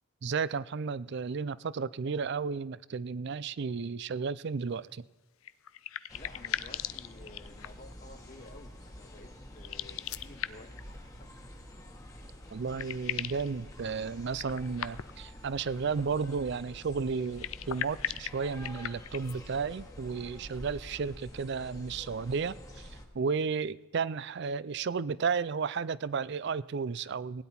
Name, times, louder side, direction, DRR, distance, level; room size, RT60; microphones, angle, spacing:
voice 1, 0.2-5.0 12.5-27.4, right 5 dB, 55° right, 19 dB, 0.4 m, -33 dB
sound 1, 5.4-7.9 9.5-10.8 12.2-12.3 12.5-13.5 14.3-15.3 17.2-19.4, left 11 dB, 85° left, 0.5 m, -38 dB
voice 2, 6.1-11.4, left 2 dB, 40° left, 4 dB, 0.8 m, -53 dB
sound 2, 6.1-23.1, equal, 15° left, 1.4 m, -48 dB
16.5 x 10.0 x 4.3 m, 1.2 s
head